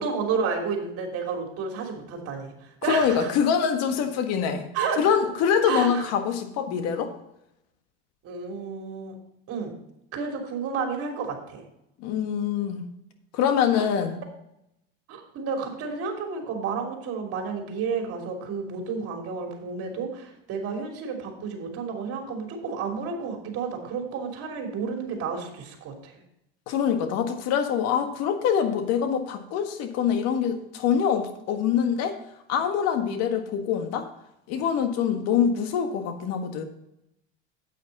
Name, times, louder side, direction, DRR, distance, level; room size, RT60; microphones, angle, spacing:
voice 1, 0.0-3.3 4.7-5.0 5.6-6.0 8.2-9.1 9.5-9.7 10.1-11.6 13.7-13.9 15.1-26.1, right 5 dB, 50° right, 2 dB, 3.1 m, -31 dB
voice 2, 2.9-4.7 5.0-7.1 12.0-12.8 13.3-14.2 26.7-32.2 32.5-34.1 34.5-36.6, left 7 dB, 60° left, 7 dB, 1.6 m, -24 dB
9.3 x 8.5 x 4.1 m, 0.81 s
supercardioid pair, 110°, 30 cm